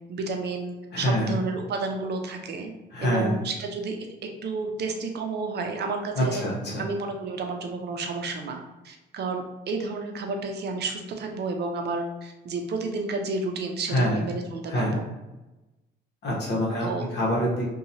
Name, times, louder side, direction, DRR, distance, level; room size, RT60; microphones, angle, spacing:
voice 1, 0.1-2.7 3.0-4.0 4.4-6.4 6.8-8.6 8.8-15.0 16.8-17.1, right 3 dB, 55° right, 4 dB, 0.5 m, -31 dB
voice 2, 0.9-1.3 2.9-3.3 6.1-6.8 13.9-14.2 14.7-15.0 16.2-17.7, equal, 60° left, -3 dB, 1.0 m, -25 dB
2.8 x 2.3 x 2.7 m, 1.0 s
cardioid pair, 90°, 20 cm